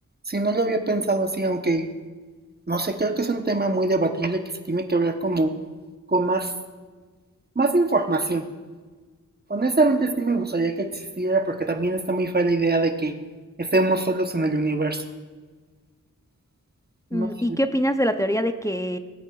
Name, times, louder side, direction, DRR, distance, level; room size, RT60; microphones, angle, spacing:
voice 1, 0.3-1.9 2.7-4.4 4.7-5.5 6.1-6.5 7.6-8.4 9.5-13.2 13.6-15.0 17.1-17.3, right 2 dB, 30° right, 6 dB, 0.9 m, -23 dB
voice 2, 17.1-19.0, equal, 10° left, 7 dB, 0.6 m, -24 dB
18.0 x 8.7 x 2.4 m, 1.4 s
wide cardioid pair, 55°, 33 cm